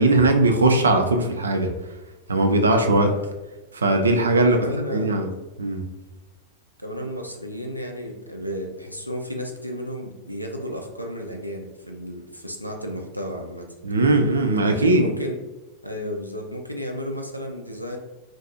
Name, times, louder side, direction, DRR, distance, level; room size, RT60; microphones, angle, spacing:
voice 1, 0.0-1.7 2.3-3.1 3.7-4.6 4.9-5.3 5.6-5.8 13.8-15.1, right 2 dB, 75° right, 5 dB, 0.3 m, -19 dB
voice 2, 2.6-3.2 4.5-5.2 6.8-13.7 14.6-15.4 15.8-18.0, equal, 90° left, 2 dB, 0.4 m, -33 dB
2.5 x 2.3 x 2.6 m, 1.1 s
figure-of-eight pair, 90°, 0 cm